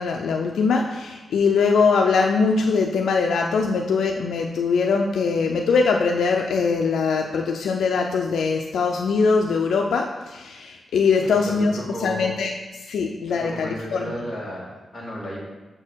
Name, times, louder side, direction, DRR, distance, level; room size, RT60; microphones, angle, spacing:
voice 1, 0.0-14.0, left 4 dB, 90° left, 2 dB, 0.5 m, -22 dB
voice 2, 11.2-12.3 13.3-15.4, equal, 15° left, -6 dB, 2.3 m, -34 dB
6.2 x 4.4 x 6.2 m, 1.1 s
wide cardioid pair, 125°, 0 cm